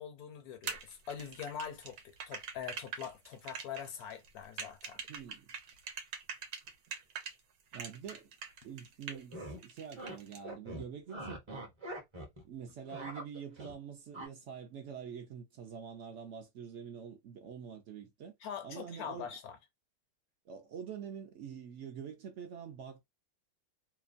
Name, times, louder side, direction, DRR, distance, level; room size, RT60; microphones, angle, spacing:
voice 1, 0.0-5.0 18.4-19.6, left 8 dB, 85° left, 1.2 m, -43 dB
sound 1, 0.6-7.3 7.7-9.3 9.6-10.4, right 6 dB, 90° right, 1.2 m, -43 dB
voice 2, 5.1-5.5 7.7-8.3 8.6-11.7 12.4-18.3 18.6-19.3 20.5-23.0, right 7 dB, 65° right, 0.8 m, -46 dB
sound 2, 9.1-9.6 10.0-10.2 10.4-12.4 12.7-13.8 14.1-14.3, right 1 dB, 25° right, 0.7 m, -43 dB
2.9 x 2.2 x 2.5 m
omnidirectional pair, 1.6 m